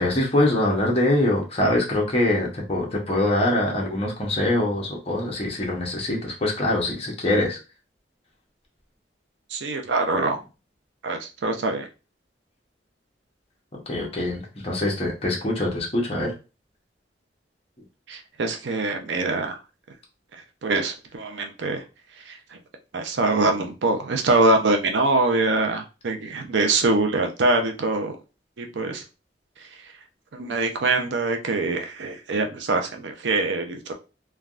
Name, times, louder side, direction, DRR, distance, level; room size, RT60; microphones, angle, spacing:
voice 1, 0.0-7.6 13.9-16.3, left 1 dB, 35° left, -2 dB, 0.8 m, -23 dB
voice 2, 9.5-10.4 11.0-11.9 18.1-19.6 20.6-21.8 22.3-22.6 22.9-28.2 28.6-29.0 29.6-29.7 30.3-33.9, right 2 dB, 85° right, 4 dB, 0.5 m, -24 dB
3.3 x 2.2 x 2.4 m, 0.30 s
head